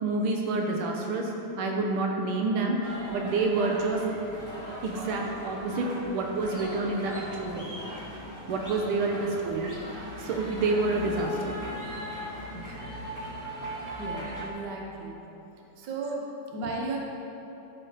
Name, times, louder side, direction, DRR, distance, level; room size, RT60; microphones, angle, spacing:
voice 1, 0.0-4.1 4.8-7.7 8.5-11.6 11.8-12.0 13.9-14.0, right 3 dB, 85° right, 1 dB, 1.7 m, -28 dB
sound 1, 2.8-14.5, equal, 10° right, 1.0 m, -39 dB
voice 2, 14.0-15.2 15.8-17.0, right 2 dB, 55° right, -1 dB, 1.5 m, -35 dB
12.0 x 4.8 x 5.0 m, 3.0 s
omnidirectional pair, 2.4 m